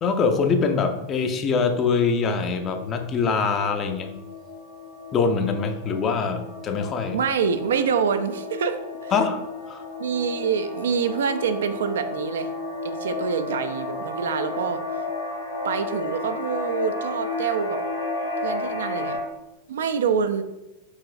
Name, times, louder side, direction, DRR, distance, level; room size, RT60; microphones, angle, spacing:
voice 1, 0.0-4.1 5.1-7.2 9.1-9.4 9.7-9.8, left 5 dB, 30° left, 6 dB, 0.5 m, -23 dB
sound 1, 1.5-19.2, left 3 dB, 80° left, 0.9 m, -33 dB
voice 2, 7.1-9.1 10.0-12.5 12.8-14.8 15.6-17.8 18.4-19.2 19.7-20.4, right 6 dB, 65° right, 9 dB, 0.3 m, -26 dB
4.7 x 3.1 x 2.5 m, 0.98 s
figure-of-eight pair, 90°, 0 cm